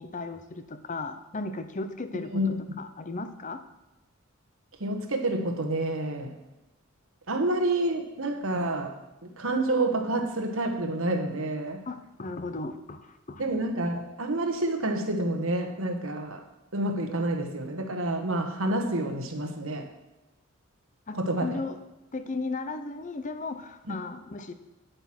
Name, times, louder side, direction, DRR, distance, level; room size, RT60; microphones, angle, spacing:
voice 1, 0.0-3.6 11.9-13.4 21.1-21.8 22.1-24.5, left 3 dB, 35° left, 10 dB, 0.7 m, -36 dB
voice 2, 4.8-6.4 7.3-9.0 9.2-11.8 13.4-16.4 16.7-19.9 21.1-21.6 23.9-24.0, right 1 dB, 75° right, 5 dB, 1.4 m, -28 dB
9.5 x 8.0 x 6.1 m, 1.0 s
head